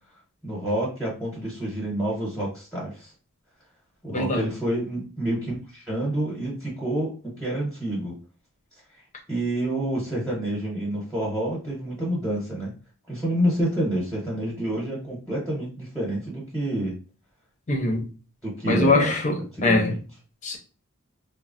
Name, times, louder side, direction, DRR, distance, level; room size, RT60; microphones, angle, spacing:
voice 1, 0.4-3.1 4.0-8.2 9.3-12.7 13.1-17.0 18.4-19.1 19.5-20.0, right 1 dB, 5° left, 0.9 m, -28 dB
voice 2, 4.1-4.5 17.7-18.0 18.7-19.9 20.4-20.6, left 2 dB, 35° left, 0.6 m, -22 dB
3.1 x 2.0 x 2.4 m
head